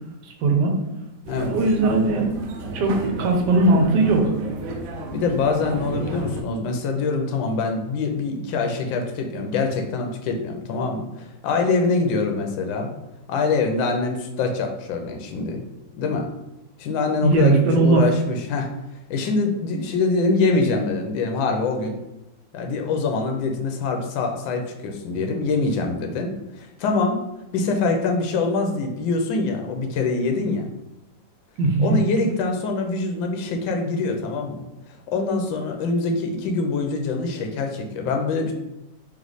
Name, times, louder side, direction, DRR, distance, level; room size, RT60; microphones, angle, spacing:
voice 1, 0.2-0.8 1.5-2.3 2.7-4.3 17.2-18.0 31.6-32.0, right 3 dB, 70° right, 2 dB, 1.3 m, -19 dB
sound 1, 1.2-6.4, right 2 dB, 90° right, 0.7 m, -32 dB
voice 2, 5.1-12.9 13.3-15.6 15.9-16.3 16.8-18.7 19.1-22.0 22.5-27.2 27.5-30.7 31.8-38.5, left 3 dB, 80° left, 4 dB, 1.3 m, -24 dB
3.3 x 3.2 x 3.9 m, 0.92 s
omnidirectional pair, 2.1 m